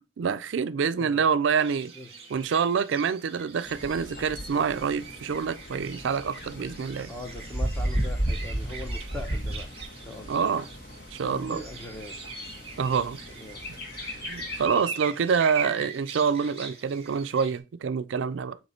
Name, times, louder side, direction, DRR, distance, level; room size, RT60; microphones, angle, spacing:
voice 1, 0.2-1.9 2.3-7.1 10.3-10.6 11.1-11.6 12.8-13.2 14.3-18.6, right 6 dB, 80° right, 0.4 m, -26 dB
sound 1, 1.6-17.6, right 6 dB, 30° right, 1.4 m, -42 dB
Bird, 3.6-14.7, equal, 50° left, 1.6 m, -35 dB
voice 2, 7.1-10.5 11.2-12.2 13.3-13.6 14.8-15.3, left 1 dB, 10° left, 0.9 m, -41 dB
7.4 x 3.0 x 4.3 m
head